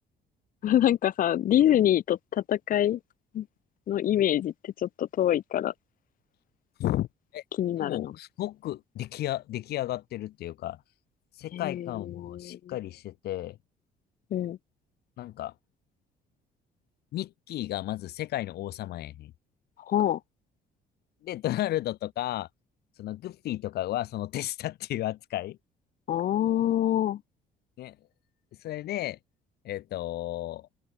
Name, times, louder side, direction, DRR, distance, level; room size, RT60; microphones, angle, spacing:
voice 1, 0.6-3.0 3.3-3.5 3.9-5.7 7.6-8.1 11.5-12.7 14.3-14.6 19.9-20.2 26.1-27.2, left 11 dB, 55° left, 1.0 m, -25 dB
voice 2, 7.8-10.8 11.4-13.6 15.2-15.5 17.1-19.3 21.2-22.5 23.0-25.6 27.8-27.9 28.6-29.2 29.6-30.7, left 14 dB, 70° left, 3.2 m, -33 dB
open air
cardioid pair, 110°, 17 cm